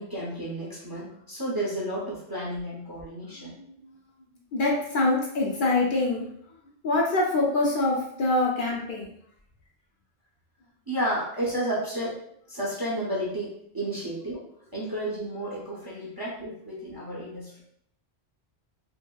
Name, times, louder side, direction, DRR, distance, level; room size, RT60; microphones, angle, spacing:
voice 1, 0.0-3.5 10.9-12.2 12.5-17.6, right 1 dB, 30° right, -6 dB, 0.5 m, -32 dB
voice 2, 3.4-4.0 4.5-6.3 6.8-9.1, left 2 dB, 60° left, -3 dB, 0.6 m, -25 dB
2.7 x 2.6 x 2.2 m, 0.70 s
omnidirectional pair, 1.1 m